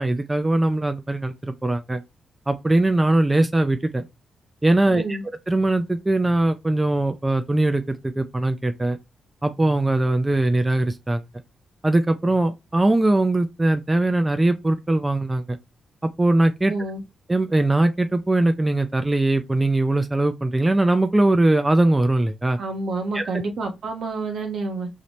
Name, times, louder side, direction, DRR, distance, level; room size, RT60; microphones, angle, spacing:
voice 1, 0.0-2.0 2.5-4.0 4.6-5.0 5.5-9.0 9.4-11.2 11.8-15.6 16.0-16.7 17.3-22.6 23.1-23.2, right 2 dB, 15° right, 0.5 m, -21 dB
voice 2, 4.9-5.2 16.7-17.0 22.6-24.9, right 3 dB, 70° right, 1.1 m, -28 dB
4.9 x 2.7 x 3.0 m
cardioid pair, 70°, 0 cm